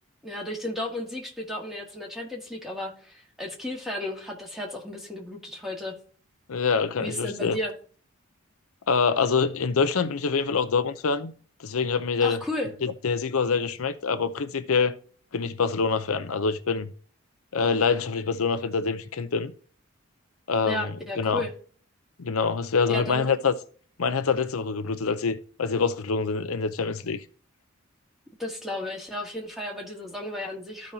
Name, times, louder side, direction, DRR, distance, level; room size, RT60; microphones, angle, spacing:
voice 1, 0.2-6.0 7.0-7.7 12.2-12.7 20.7-21.5 22.9-23.4 28.4-30.9, left 1 dB, ahead, 1.8 m, -34 dB
voice 2, 6.5-7.6 8.9-11.3 11.6-12.4 12.8-14.9 15.3-16.9 17.5-19.5 20.5-20.9 21.2-21.4 22.2-23.5 24.0-27.2, left 5 dB, 80° left, 0.6 m, -25 dB
13.5 x 5.1 x 2.8 m
head